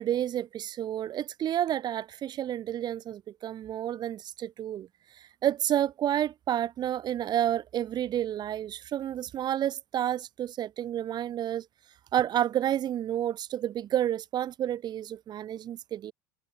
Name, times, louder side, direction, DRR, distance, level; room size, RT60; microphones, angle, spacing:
voice 1, 0.0-4.9 5.4-11.7 12.1-16.1, right 11 dB, 40° right, 0.6 m, -30 dB
hypercardioid pair, 85°, 11 cm